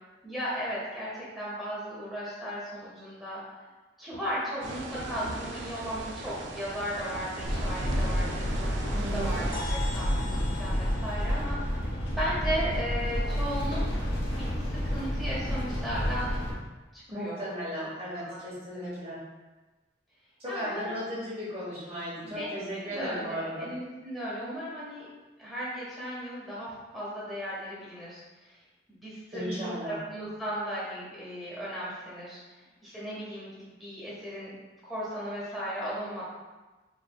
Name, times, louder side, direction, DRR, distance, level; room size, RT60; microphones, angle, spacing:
voice 1, 0.2-3.4 4.0-8.8 9.1-14.0 14.3-16.3 16.9-17.4 17.8-17.9 18.2-18.4 18.7-18.9 20.5-21.0 22.2-25.1 25.4-28.6 28.9-32.4 32.8-34.5 34.8-36.2, equal, ahead, -9 dB, 1.2 m, -36 dB
sound 1, 4.6-9.6, right 2 dB, 85° right, 0.5 m, -38 dB
sound 2, 7.4-16.5, equal, 85° left, 1.0 m, -30 dB
voice 2, 8.9-9.4 17.1-19.2 20.4-23.7 29.3-29.9, equal, 30° right, -11 dB, 1.0 m, -36 dB
sound 3, 9.5-13.3, left 3 dB, 50° left, 0.9 m, -43 dB
4.8 x 3.2 x 2.3 m, 1.2 s
head